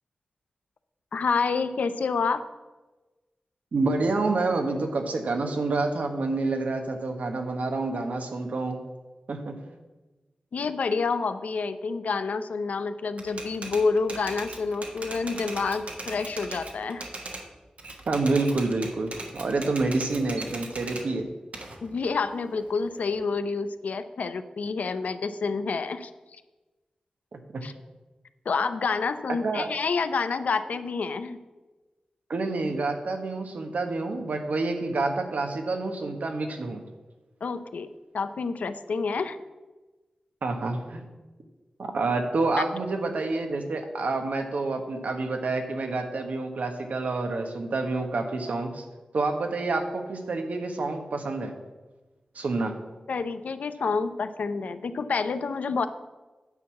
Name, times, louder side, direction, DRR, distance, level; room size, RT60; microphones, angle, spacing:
voice 1, 1.1-2.4 10.5-17.1 21.8-26.1 27.6-27.7 28.5-31.4 37.4-37.9 38.1-39.4 53.1-55.9, left 4 dB, 85° left, 11 dB, 0.6 m, -28 dB
voice 2, 3.7-8.8 9.3-9.5 18.1-21.3 27.3-27.6 29.4-29.7 32.3-36.8 40.4-41.0 41.8-48.8 49.1-51.5 52.3-52.7, right 3 dB, 80° right, 5 dB, 1.3 m, -28 dB
Typewriter, 13.2-17.5 17.8-21.1 21.5-23.2, right 2 dB, 60° right, 1.4 m, -39 dB
9.6 x 4.7 x 7.3 m, 1.2 s
wide cardioid pair, 65°, 2 cm